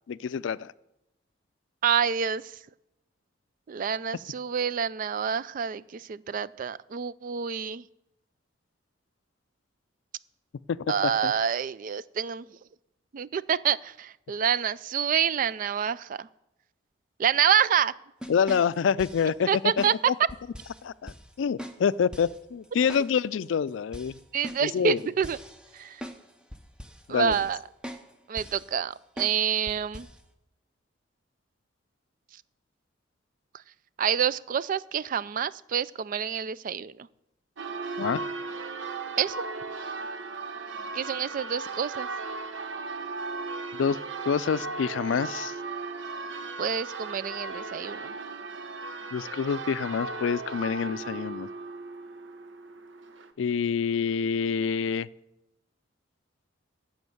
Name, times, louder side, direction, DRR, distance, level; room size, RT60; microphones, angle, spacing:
voice 1, 0.1-0.7 10.7-10.8 11.0-11.3 18.3-20.1 20.8-24.1 24.6-25.0 27.1-27.4 38.0-38.2 43.7-44.0 44.3-45.5 49.1-51.5 53.4-55.1, left 6 dB, 90° left, 18 dB, 0.4 m, -27 dB
voice 2, 1.8-2.5 3.7-7.8 10.9-12.5 13.1-16.3 17.2-17.9 19.5-20.1 24.3-25.4 25.7-26.0 27.1-27.6 28.3-30.1 34.0-37.1 39.2-39.4 40.9-42.1 46.6-48.1, right 8 dB, 45° right, 18 dB, 0.3 m, -27 dB
sound 1, 18.2-19.3 19.8-20.0 20.3-20.8 21.1-21.2 21.6-21.8 22.1-22.4 22.9-23.1 23.4-23.5 23.9-26.2 26.5-27.0 27.3-27.6 27.8-28.1 28.4-28.7 29.2-29.4 29.7-30.2, equal, 5° right, 0.8 m, -41 dB
Church bell, 37.6-53.3, right 3 dB, 85° right, 0.9 m, -37 dB
11.0 x 7.1 x 7.8 m, 0.88 s
head